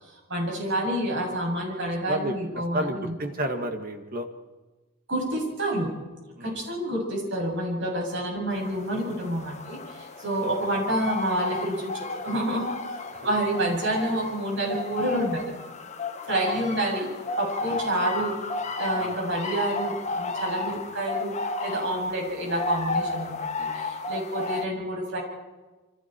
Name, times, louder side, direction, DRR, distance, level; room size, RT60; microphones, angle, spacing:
voice 1, 0.3-3.1 5.1-5.9 6.4-15.5 16.2-17.1 17.4-18.3 18.8-21.3 21.6-25.2, right 1 dB, 60° right, -1 dB, 7.6 m, -28 dB
voice 2, 2.7-4.3 6.4-6.6 10.4-10.5 13.1-13.2 17.6-17.8 18.9-19.2, right 1 dB, 45° right, 6 dB, 2.0 m, -31 dB
sound 1, 8.5-24.7, left 3 dB, 35° left, 1.5 m, -33 dB
28.0 x 25.0 x 4.6 m, 1.2 s
head